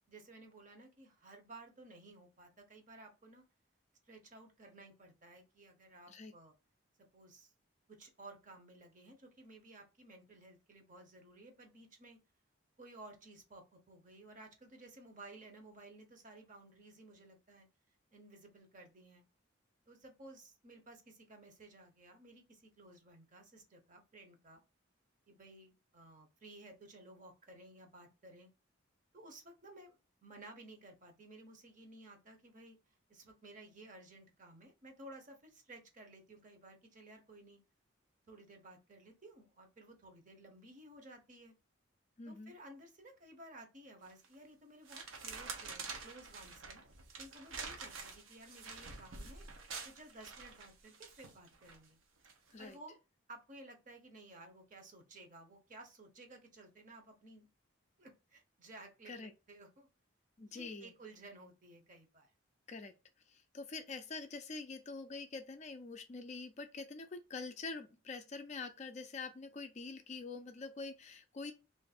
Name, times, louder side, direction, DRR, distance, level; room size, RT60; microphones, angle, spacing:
voice 1, 0.1-3.4 4.1-6.5 7.1-7.5 7.9-12.2 12.8-17.7 18.1-19.2 19.9-24.6 25.3-28.5 29.1-32.8 33.1-37.6 38.3-41.5 42.2-46.8 47.2-49.5 49.8-52.0 52.6-53.0 53.3-57.5 58.0-59.9 60.5-62.3, right 2 dB, 40° right, 0.8 m, -56 dB
voice 2, 42.2-42.5 52.5-52.8 59.1-59.3 60.4-60.9 62.7-62.9 63.3-71.5, left 3 dB, 35° left, 0.4 m, -45 dB
sound 1, 44.1-44.3 44.9-51.8 52.2-52.5, right 4 dB, 80° right, 0.8 m, -47 dB
3.1 x 2.5 x 4.1 m
head